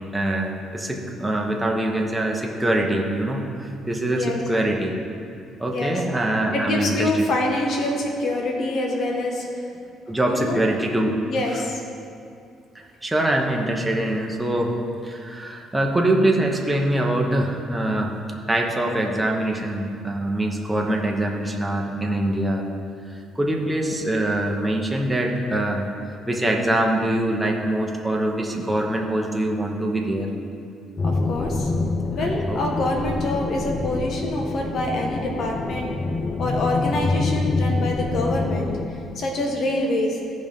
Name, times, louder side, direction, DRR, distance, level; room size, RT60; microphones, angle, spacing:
voice 1, 0.0-4.9 5.6-7.2 10.1-11.1 13.0-14.7 15.0-18.1 18.5-22.7 23.3-25.9 26.3-30.3 32.2-32.6, right 1 dB, 10° right, 0 dB, 1.0 m, -24 dB
voice 2, 6.5-9.4 10.3-10.6 11.2-11.8 31.0-31.7 32.1-35.9 36.4-38.7 39.1-40.2, left 1 dB, 55° left, 0 dB, 1.3 m, -25 dB
sound 1, 31.0-38.9, left 3 dB, 30° left, 0.5 m, -26 dB
14.5 x 5.2 x 3.6 m, 2.4 s
cardioid pair, 125°, 0 cm